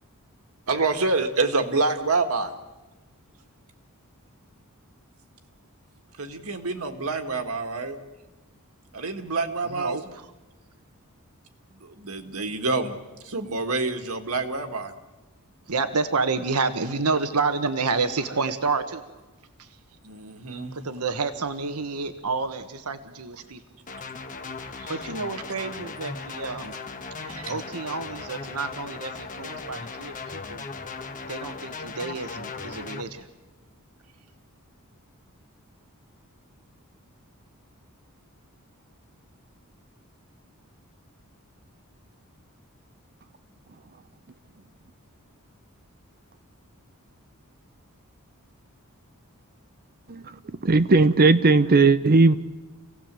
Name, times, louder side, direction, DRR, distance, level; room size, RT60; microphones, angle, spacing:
voice 1, 0.7-2.5 6.2-8.0 8.9-10.1 11.8-13.0 13.2-14.9 20.0-20.8 24.8-25.0 27.2-27.5, right 3 dB, 70° right, 7 dB, 1.9 m, -27 dB
voice 2, 9.7-10.3 15.7-19.0 19.6-19.7 20.7-23.6 24.9-26.7 27.5-30.6 31.3-33.3, right 4 dB, 90° right, 9 dB, 1.3 m, -29 dB
sound 1, 23.9-33.0, left 4 dB, 35° left, 1.3 m, -37 dB
voice 3, 50.6-52.4, right 3 dB, 45° right, 12 dB, 0.7 m, -17 dB
27.5 x 17.5 x 7.6 m, 1.1 s
head